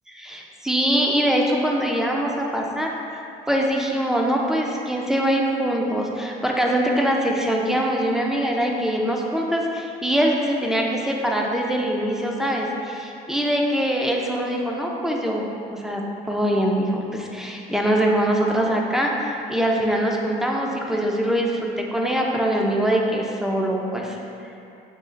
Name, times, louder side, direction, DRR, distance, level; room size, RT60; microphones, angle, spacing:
voice 1, 0.1-15.4 15.7-16.0 16.3-24.2, right 1 dB, 5° right, -1 dB, 0.4 m, -23 dB
4.9 x 2.4 x 3.8 m, 2.7 s
cardioid pair, 110°, 17 cm